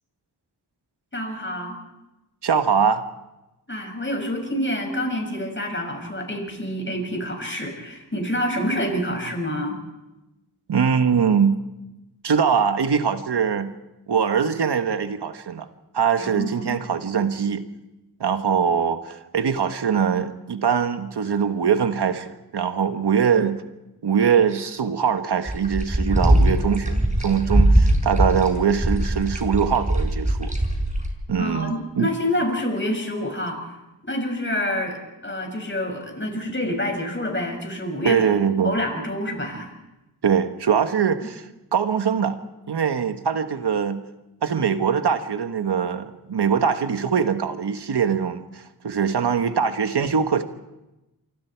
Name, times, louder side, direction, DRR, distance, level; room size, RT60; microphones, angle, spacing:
voice 1, 1.1-1.8 3.7-9.8 16.2-16.8 31.4-33.6 34.0-38.2 38.6-39.7, left 1 dB, 30° left, 6.7 m, -27 dB
voice 2, 2.4-3.0 10.7-11.6 12.2-13.7 14.1-15.7 15.9-17.6 18.2-23.6 24.0-30.5 31.3-32.1 38.0-38.8 40.2-42.4 42.7-44.0 44.4-50.4, right 7 dB, 75° right, 1.6 m, -22 dB
sound 1, 25.5-31.1, right 1 dB, 20° right, 5.1 m, -20 dB
28.0 x 25.0 x 4.7 m
cardioid pair, 60°, 40 cm